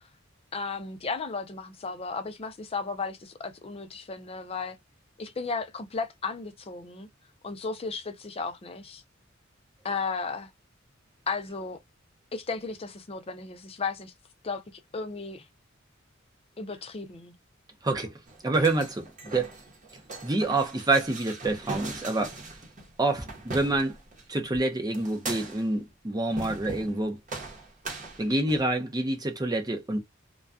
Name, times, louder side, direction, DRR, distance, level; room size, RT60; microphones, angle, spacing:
voice 1, 0.5-4.8 5.2-7.1 7.4-9.0 9.8-10.5 11.3-11.8 12.3-14.1 14.4-15.4 16.6-17.3, left 4 dB, 30° left, 0.5 m, -34 dB
voice 2, 17.8-18.1 18.4-19.5 20.2-22.4 23.0-24.0 24.3-27.2 28.2-30.0, right 2 dB, 20° right, 0.6 m, -27 dB
sound 1, 18.3-24.3 24.9-25.8 26.3-27.0 27.3-28.7, right 3 dB, 40° right, 0.9 m, -40 dB
2.3 x 2.2 x 2.4 m
head